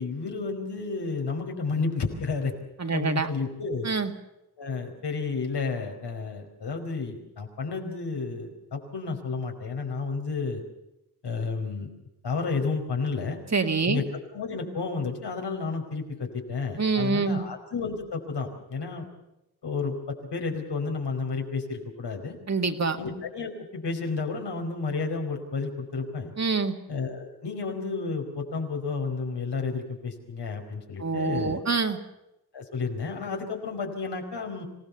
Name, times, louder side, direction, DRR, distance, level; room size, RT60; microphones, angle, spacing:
voice 1, 0.0-2.5 2.9-3.9 4.6-10.6 11.2-11.9 12.2-13.4 13.9-14.0 14.3-19.0 19.6-22.4 23.0-26.3 26.9-31.6 32.5-34.7, left 4 dB, 80° left, 3 dB, 4.8 m, -31 dB
voice 2, 2.8-3.3 3.8-4.1 13.5-14.0 16.8-17.4 22.5-23.0 26.4-26.8 31.0-32.0, right 4 dB, 40° right, 6 dB, 2.0 m, -25 dB
26.5 x 17.5 x 6.9 m, 0.88 s
wide cardioid pair, 110°, 40 cm